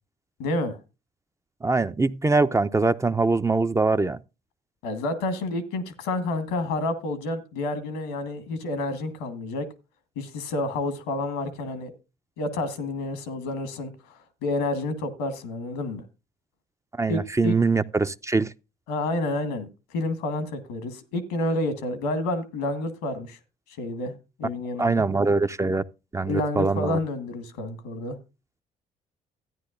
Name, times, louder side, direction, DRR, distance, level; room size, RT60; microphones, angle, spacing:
voice 1, 0.4-0.8 4.8-9.7 10.1-11.9 12.4-16.0 17.1-17.5 18.9-23.4 23.8-24.1 24.4-25.0 26.2-28.2, left 2 dB, 85° left, 1.4 m, -29 dB
voice 2, 1.6-4.2 17.0-18.5 24.8-25.8 26.1-27.0, right 3 dB, 15° right, 0.5 m, -23 dB
14.0 x 9.6 x 2.5 m
hypercardioid pair, 55°, 18 cm